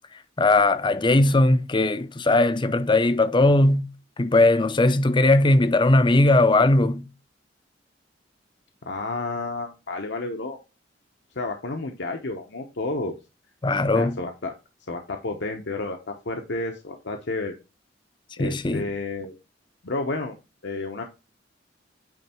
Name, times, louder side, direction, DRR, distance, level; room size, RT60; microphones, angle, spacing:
voice 1, 0.4-3.9 4.2-7.1 13.6-14.2 18.4-18.9, left 2 dB, 25° left, 0.6 m, -19 dB
voice 2, 8.9-10.6 11.4-13.2 13.9-14.5 14.9-17.5 18.4-19.3 19.8-20.4 20.6-21.0, left 2 dB, 65° left, 0.9 m, -31 dB
9.0 x 3.3 x 4.4 m
head